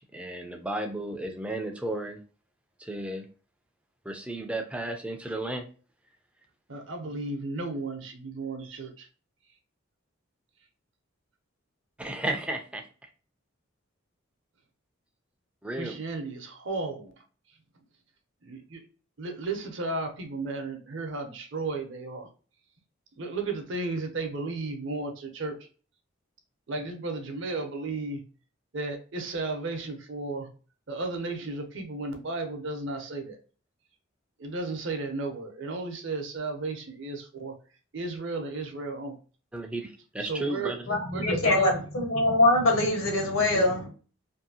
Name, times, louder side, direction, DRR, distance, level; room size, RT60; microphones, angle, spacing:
voice 1, 0.0-2.2 2.8-3.3 4.1-5.6 12.0-12.9 15.6-15.9 39.5-40.8, right 1 dB, 5° right, 0.3 m, -33 dB
voice 2, 6.7-9.1 15.8-17.1 18.4-18.8 19.2-22.3 23.2-25.6 26.7-28.2 28.7-30.5 30.9-33.4 34.4-37.5 37.9-39.1 40.2-40.7 41.1-41.8 43.5-43.7, right 3 dB, 60° right, 0.6 m, -34 dB
voice 3, 40.9-43.9, left 2 dB, 75° left, 1.0 m, -23 dB
2.7 x 2.6 x 2.7 m
head